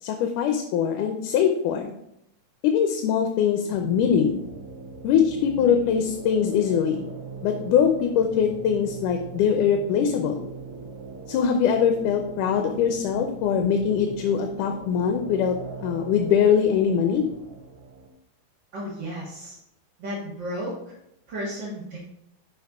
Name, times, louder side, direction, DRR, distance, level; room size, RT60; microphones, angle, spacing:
voice 1, 0.0-1.9 2.6-4.4 5.0-7.0 7.4-10.5 11.3-17.2, left 7 dB, 80° left, 5 dB, 2.2 m, -22 dB
sound 1, 3.7-18.1, right 4 dB, 65° right, 1.5 m, -40 dB
voice 2, 18.7-19.6 20.0-20.9 21.3-22.2, equal, 45° right, -5 dB, 1.6 m, -33 dB
10.5 x 5.3 x 3.5 m, 0.79 s
omnidirectional pair, 3.7 m